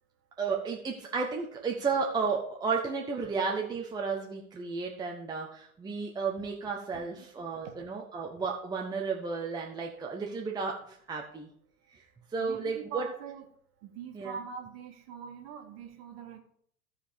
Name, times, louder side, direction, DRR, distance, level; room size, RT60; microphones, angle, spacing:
voice 1, 0.4-11.5 11.9-12.0 12.3-13.1 14.1-14.4, right 5 dB, 10° right, 0 dB, 0.8 m, -33 dB
voice 2, 6.9-7.3 7.6-7.7 12.4-13.5 13.8-16.4, right 7 dB, 35° right, 4 dB, 1.7 m, -43 dB
14.0 x 4.9 x 5.1 m, 0.65 s
figure-of-eight pair, 90°, 42 cm